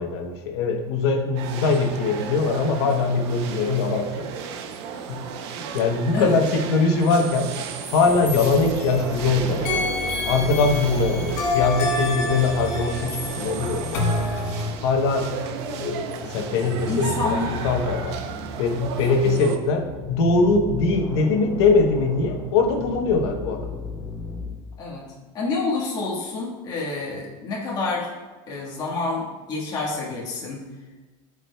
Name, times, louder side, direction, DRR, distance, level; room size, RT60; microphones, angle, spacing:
voice 1, 0.0-4.3 5.1-7.5 7.9-9.9 10.2-14.3 14.8-15.3 15.8-18.2 18.6-23.7, left 3 dB, 70° left, 4 dB, 1.0 m, -22 dB
sound 1, 1.4-19.6, right 6 dB, 75° right, 0.7 m, -35 dB
sound 2, 7.8-9.2 9.7-14.7, left 2 dB, 50° left, 1.3 m, -28 dB
sound 3, 8.1-24.5, left 2 dB, 10° left, 0.7 m, -36 dB
voice 2, 16.9-17.6 24.8-25.0 25.3-28.1 28.5-30.6, left 3 dB, 25° left, -4 dB, 1.6 m, -28 dB
12.5 x 4.8 x 2.3 m, 1.3 s
cardioid pair, 180°, 14 cm